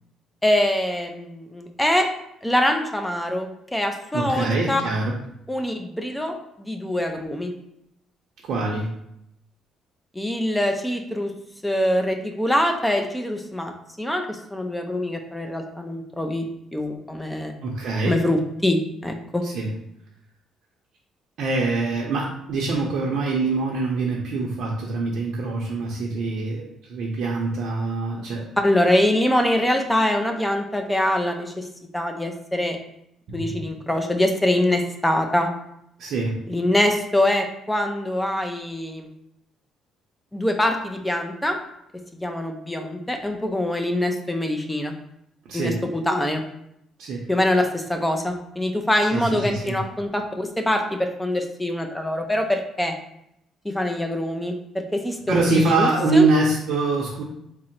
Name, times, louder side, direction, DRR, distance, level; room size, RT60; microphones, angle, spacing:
voice 1, 0.4-2.1 2.4-4.8 5.5-7.5 10.1-11.3 11.6-16.4 16.7-17.5 18.1-19.4 28.6-31.7 31.9-32.8 33.3-35.5 36.5-39.1 40.3-41.6 42.2-44.9 45.5-46.4 47.3-52.9 53.6-56.3, left 1 dB, 5° left, 4 dB, 0.4 m, -24 dB
voice 2, 4.1-5.2 8.5-8.9 17.6-18.3 19.4-19.7 21.4-28.5 33.3-33.7 36.0-36.4 45.4-45.8 47.0-47.3 49.1-49.8 55.3-57.2, right 3 dB, 65° right, -3 dB, 0.6 m, -24 dB
3.7 x 2.0 x 4.3 m, 0.78 s
cardioid pair, 140°, 0 cm